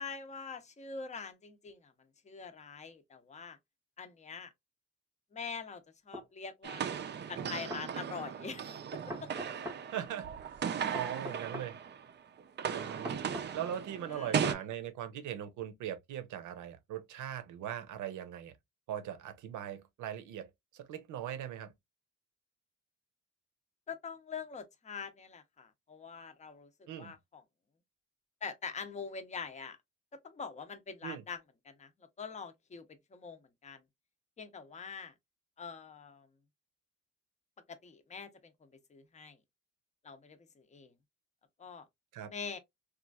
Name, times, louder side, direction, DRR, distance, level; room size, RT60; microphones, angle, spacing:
voice 1, 0.0-1.9 2.2-3.6 4.0-4.5 5.3-5.8 6.1-6.9 7.3-9.3 14.1-14.6 23.9-26.7 27.0-27.4 28.4-29.8 30.2-31.4 31.7-31.9 32.2-32.8 33.1-33.8 34.4-35.1 35.6-36.3 37.7-39.4 40.0-40.4 40.7-40.9 41.6-41.9 42.3-42.6, left 5 dB, 25° left, 0.6 m, -44 dB
sound 1, 6.1-6.3 7.4-7.9 9.1-9.8 10.9-11.7 13.1-13.5 14.4-14.6, left 1 dB, 10° right, 0.7 m, -42 dB
sound 2, 6.6-12.1 12.4-14.5, right 7 dB, 35° right, 0.4 m, -37 dB
voice 2, 9.9-10.3 10.9-11.8 12.7-13.2 13.5-18.5 18.9-21.7 26.9-27.1 31.0-31.2 42.1-42.3, right 10 dB, 80° right, 0.7 m, -40 dB
3.0 x 2.4 x 2.2 m
cardioid pair, 90°, 30 cm